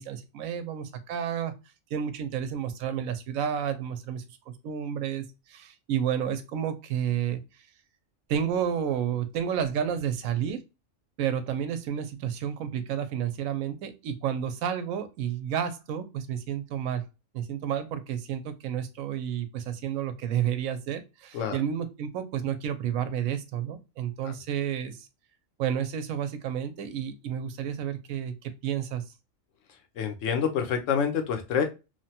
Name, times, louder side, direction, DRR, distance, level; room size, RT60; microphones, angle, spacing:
voice 1, 0.0-1.5 1.9-7.4 8.3-10.6 11.2-17.0 17.3-25.1 25.6-29.0, right 9 dB, 90° right, 10 dB, 1.0 m, -31 dB
voice 2, 30.0-31.6, left 7 dB, 75° left, 5 dB, 1.0 m, -27 dB
3.1 x 2.1 x 2.7 m, 0.27 s
omnidirectional pair, 1.4 m